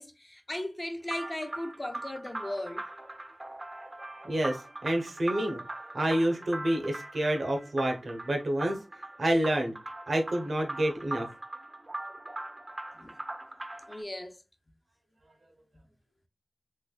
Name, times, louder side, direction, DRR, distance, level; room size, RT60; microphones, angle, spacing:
voice 1, 0.0-2.8 12.9-13.2 13.9-14.4, left 1 dB, 30° left, 0.7 m, -37 dB
sound 1, 1.1-14.0, right 2 dB, 35° right, 0.6 m, -41 dB
voice 2, 4.2-5.6 5.9-8.8 9.2-9.7 10.1-11.3, right 1 dB, 75° right, 0.9 m, -28 dB
3.3 x 3.1 x 2.4 m
cardioid pair, 45°, 0 cm